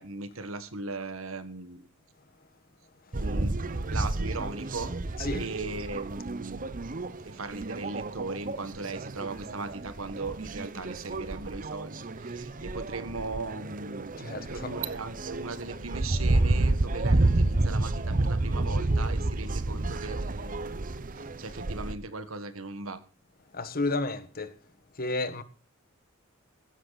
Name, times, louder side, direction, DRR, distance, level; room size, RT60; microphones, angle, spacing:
voice 1, 0.0-1.9 3.2-6.8 7.2-20.8 21.1-23.0, right 3 dB, 80° right, 1.7 m, -38 dB
sound 1, 3.1-21.9, right 2 dB, 40° right, 0.9 m, -30 dB
voice 2, 14.2-14.7 23.5-24.5 25.0-25.4, left 2 dB, 45° left, 1.5 m, -31 dB
15.5 x 13.0 x 4.1 m
head